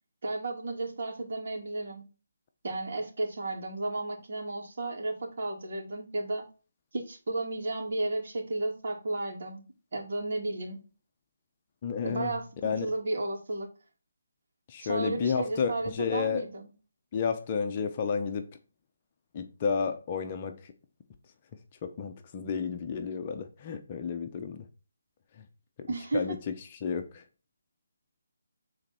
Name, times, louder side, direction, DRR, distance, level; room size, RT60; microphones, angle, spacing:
voice 1, 0.2-2.0 2.6-6.4 6.9-9.6 9.9-10.8 12.0-13.7 14.8-16.7 25.9-26.2, right 2 dB, 55° right, 2.7 m, -33 dB
voice 2, 11.8-12.4 12.6-12.9 14.7-16.4 17.1-18.5 19.3-20.7 21.8-24.6 25.4-25.5 25.8-25.9 26.1-27.2, left 6 dB, 30° left, 0.8 m, -31 dB
7.6 x 4.1 x 4.4 m
hypercardioid pair, 165°, 0 cm